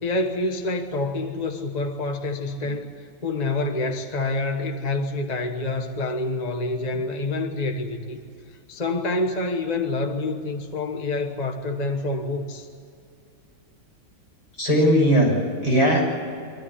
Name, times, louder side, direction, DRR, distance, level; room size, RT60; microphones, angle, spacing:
voice 1, 0.0-8.2 8.7-12.7, left 2 dB, 25° left, 5 dB, 1.0 m, -27 dB
voice 2, 14.6-16.0, equal, 50° left, -2 dB, 7.8 m, -19 dB
24.5 x 14.0 x 9.9 m, 2.5 s
omnidirectional pair, 2.2 m